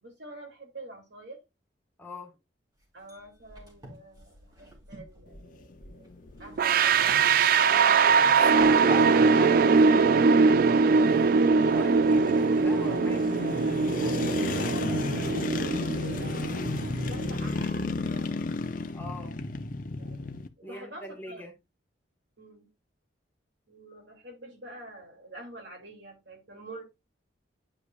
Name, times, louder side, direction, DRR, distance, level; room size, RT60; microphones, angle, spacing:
voice 1, 0.0-1.4 2.9-7.4 7.8-8.1 14.0-18.4 20.0-21.4 22.4-22.7 23.7-26.8, right 2 dB, 70° right, 2.8 m, -47 dB
voice 2, 2.0-2.3 7.6-10.3 11.1-13.4 14.0-14.5 18.9-19.4 20.6-21.5, left 1 dB, 10° left, 1.6 m, -42 dB
sound 1, 2.8-9.1, left 1 dB, 20° right, 3.0 m, -44 dB
sound 2, 5.3-20.5, left 3 dB, 45° left, 0.6 m, -34 dB
sound 3, 6.6-17.5, right 5 dB, 50° right, 0.3 m, -22 dB
9.7 x 5.0 x 2.5 m
head